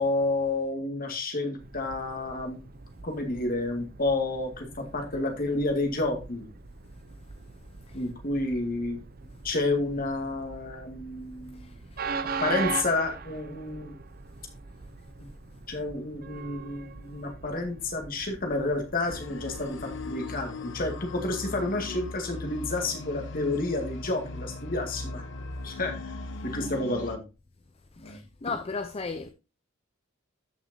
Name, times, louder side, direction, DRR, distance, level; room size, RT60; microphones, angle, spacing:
voice 1, 0.0-2.6 3.0-6.4 7.9-9.0 9.4-11.7 12.1-13.9 15.2-15.3 15.7-25.2 25.6-25.9 26.4-27.2 28.0-28.2, left 2 dB, 45° left, 2.1 m, -30 dB
Train, 1.6-20.1, right 5 dB, 45° right, 0.6 m, -41 dB
voice 2, 11.5-12.0 21.6-22.0 28.0-29.3, left 4 dB, 30° left, 0.6 m, -37 dB
sound 1, 19.0-27.2, left 2 dB, 65° left, 1.0 m, -38 dB
13.5 x 5.9 x 2.8 m
head